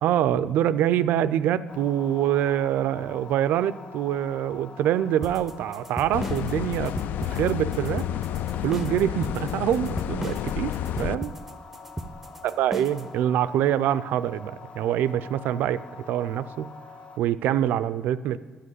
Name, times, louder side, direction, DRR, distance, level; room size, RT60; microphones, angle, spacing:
voice 1, 0.0-6.9 7.3-8.1 8.6-11.3 12.4-16.7 17.2-18.4, right 11 dB, 75° right, 15 dB, 0.4 m, -25 dB
sound 1, 1.7-17.2, left 4 dB, 40° left, 0.7 m, -45 dB
sound 2, 5.2-13.1, right 1 dB, 5° right, 0.5 m, -36 dB
sound 3, 6.1-11.2, left 11 dB, 65° left, 0.3 m, -30 dB
10.0 x 7.7 x 8.1 m, 1.4 s
cardioid pair, 145°, 3 cm